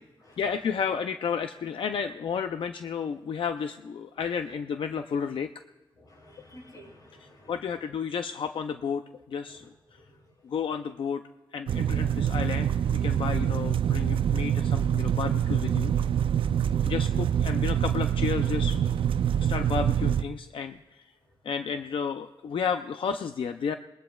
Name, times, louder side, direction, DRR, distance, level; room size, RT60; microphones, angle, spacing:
voice 1, 0.4-5.5 7.2-9.7 9.9-10.0 10.4-11.2 11.5-15.9 16.8-19.0 19.4-21.1 21.4-23.8, left 6 dB, 80° left, 7 dB, 0.5 m, -32 dB
voice 2, 6.0-7.7 9.5-10.3 21.2-21.3, equal, 45° left, -4 dB, 7.9 m, -53 dB
sound 1, 11.7-20.2, right 9 dB, 80° right, 0.4 m, -25 dB
27.5 x 21.0 x 2.4 m, 1.1 s
wide cardioid pair, 140°, 9 cm